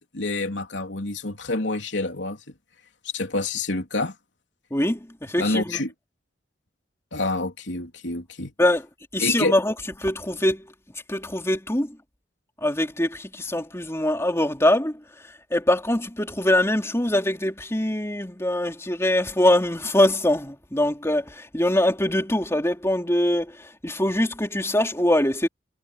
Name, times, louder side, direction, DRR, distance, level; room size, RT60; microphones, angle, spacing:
voice 1, 0.0-2.5 3.1-4.1 5.4-5.9 7.1-8.5 9.2-9.6, left 2 dB, 85° left, 3.3 m, -27 dB
voice 2, 4.7-5.8 8.6-8.8 9.1-9.7 10.0-10.7 11.1-12.0 12.6-15.0 15.5-25.5, left 1 dB, 15° left, 3.3 m, -23 dB
head